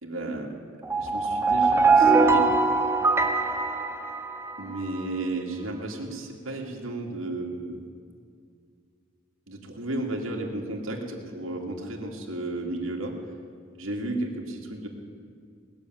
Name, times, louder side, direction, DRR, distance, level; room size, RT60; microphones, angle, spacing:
voice 1, 0.0-0.5 1.0-2.5 4.6-7.7 9.5-13.1 13.8-14.9, right 2 dB, 80° right, 0 dB, 2.3 m, -33 dB
sound 1, 0.8-4.8, right 4 dB, 10° right, 0.8 m, -22 dB
19.5 x 7.0 x 9.1 m, 2.3 s
head